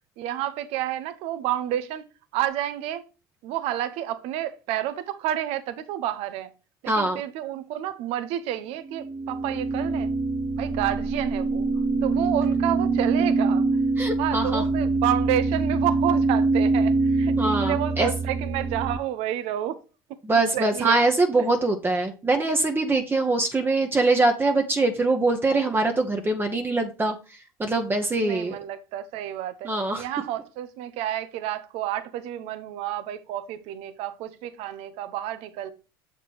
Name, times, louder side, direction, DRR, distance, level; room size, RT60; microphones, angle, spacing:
voice 1, 0.2-2.0 2.3-3.0 3.4-6.5 6.8-10.1 10.6-11.7 12.0-13.7 14.2-19.8 20.5-21.0 28.2-29.7 30.0-35.7, right 12 dB, 65° right, 0.8 m, -30 dB
voice 2, 6.9-7.2 14.0-14.6 17.4-18.1 20.2-27.1 27.6-28.5 29.6-30.0, right 2 dB, 20° right, 1.1 m, -23 dB
sound 1, 8.9-19.0, right 3 dB, 35° right, 0.8 m, -24 dB
6.9 x 4.5 x 4.5 m
supercardioid pair, 85°, 11 cm